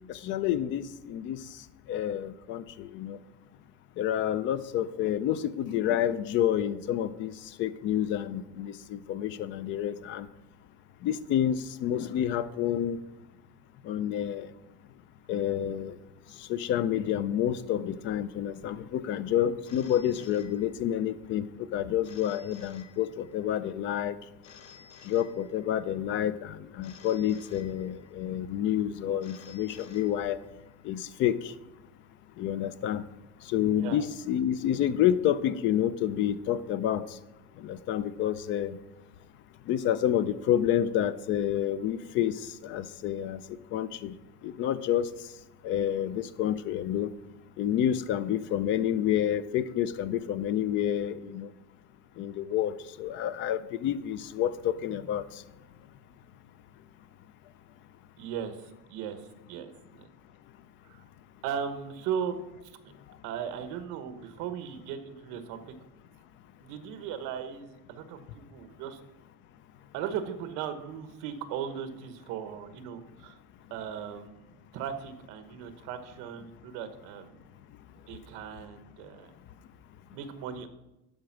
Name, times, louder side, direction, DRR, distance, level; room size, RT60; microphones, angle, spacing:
voice 1, 0.1-1.4 1.9-3.2 4.0-7.3 7.6-10.3 11.0-13.0 13.9-14.5 15.3-15.9 16.5-21.4 21.7-24.2 25.1-30.4 30.8-31.4 32.4-33.0 33.5-37.0 37.6-38.8 39.7-42.3 42.6-43.4 43.7-44.1 44.4-45.1 45.6-47.1 47.6-51.5 52.2-52.7 53.0-55.2, left 10 dB, 40° left, 15 dB, 0.4 m, -29 dB
Telephone, 19.6-21.1 22.0-23.5 24.4-25.9 26.8-28.3 29.2-30.7, left 7 dB, 60° left, 1.2 m, -54 dB
voice 2, 58.2-58.6 58.9-59.2 59.5-60.0 60.8-61.0 61.4-62.4 63.2-65.7 66.6-69.0 69.9-73.4 73.7-74.4 74.7-77.4 78.1-79.3 80.1-80.7, right 8 dB, 65° right, 9 dB, 1.1 m, -37 dB
11.5 x 5.2 x 5.9 m, 0.96 s
cardioid pair, 180°, 32 cm